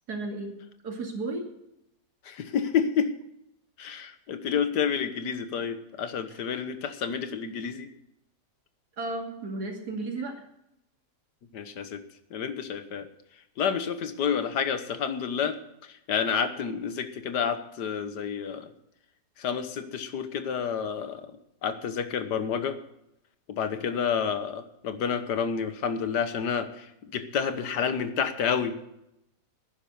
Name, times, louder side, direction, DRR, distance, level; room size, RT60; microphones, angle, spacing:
voice 1, 0.1-0.6 0.8-1.5 9.0-10.3, right 2 dB, 70° right, 2 dB, 3.0 m, -33 dB
voice 2, 2.3-3.1 3.8-7.9 11.5-12.0 12.3-13.1 13.6-18.7 19.4-21.3 21.6-22.8 23.5-28.8, left 7 dB, 85° left, 10 dB, 1.7 m, -29 dB
11.5 x 10.0 x 6.9 m, 0.81 s
omnidirectional pair, 1.7 m